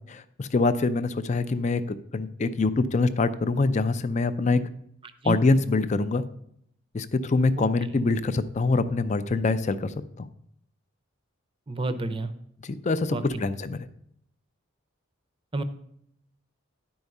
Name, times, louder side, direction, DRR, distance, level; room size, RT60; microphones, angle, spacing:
voice 1, 0.1-4.6 5.2-6.2 6.9-10.3 12.6-13.9, left 3 dB, 35° left, 13 dB, 0.4 m, -25 dB
voice 2, 11.7-12.3 13.1-13.2 15.5-15.6, right 2 dB, 25° right, 11 dB, 0.6 m, -29 dB
10.5 x 4.7 x 5.3 m, 0.73 s
head